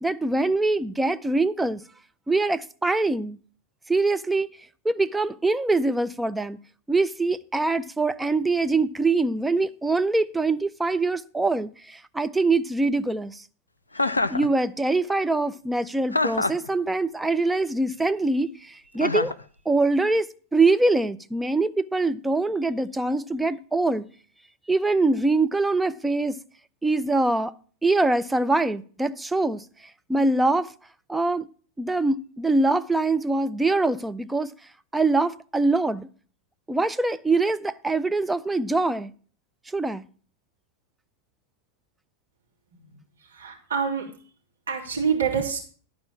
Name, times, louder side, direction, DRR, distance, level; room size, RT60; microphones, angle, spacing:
voice 1, 0.0-1.8 2.3-3.4 3.9-4.5 4.8-6.6 6.9-13.4 14.3-19.3 19.7-24.0 24.7-26.4 26.8-27.5 27.8-29.6 30.1-30.7 31.1-31.5 31.8-34.5 34.9-36.1 36.7-39.1 39.7-40.0, right 2 dB, 5° right, 0.5 m, -23 dB
Chuckle chortle, 14.0-14.5 16.1-16.7 19.0-19.4, left 2 dB, 80° left, 0.5 m, -25 dB
voice 2, 42.9-44.1 44.7-45.6, right 6 dB, 70° right, 3.1 m, -27 dB
11.5 x 4.9 x 7.3 m
figure-of-eight pair, 90°, 0 cm